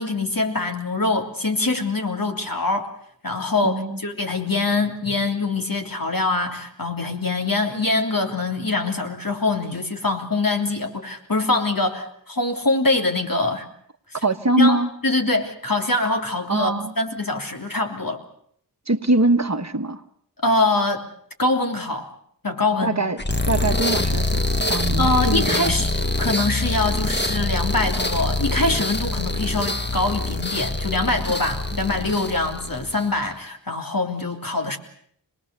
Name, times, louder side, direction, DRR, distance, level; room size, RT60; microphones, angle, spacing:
voice 1, 0.0-2.9 3.2-13.7 14.6-18.2 20.4-21.0 21.4-22.1 22.4-23.0 25.0-34.8, left 2 dB, 50° left, 3 dB, 3.3 m, -24 dB
voice 2, 3.6-4.0 14.2-14.9 16.5-16.9 18.9-20.0 22.8-23.2 23.5-24.4 24.7-25.8 31.7-31.8, right 2 dB, 40° right, 9 dB, 1.4 m, -22 dB
sound 1, 23.2-33.2, left 2 dB, 25° left, 1.6 m, -24 dB
26.5 x 20.0 x 6.9 m, 0.67 s
wide cardioid pair, 40°, 44 cm